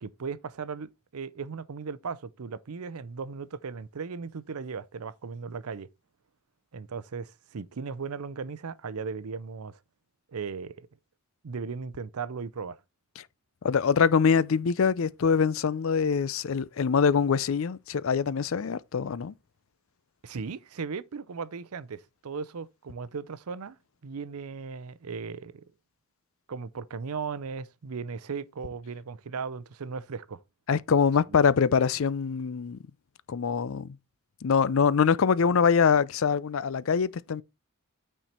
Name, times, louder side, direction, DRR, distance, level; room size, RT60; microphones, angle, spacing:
voice 1, 0.0-5.9 6.7-9.8 10.3-10.9 11.4-12.8 20.2-23.8 24.0-25.6 26.5-30.4, right 5 dB, 85° right, 0.6 m, -37 dB
voice 2, 13.6-19.3 30.7-32.8 33.3-34.0 34.4-37.4, left 6 dB, 65° left, 0.4 m, -24 dB
9.0 x 4.5 x 4.3 m
head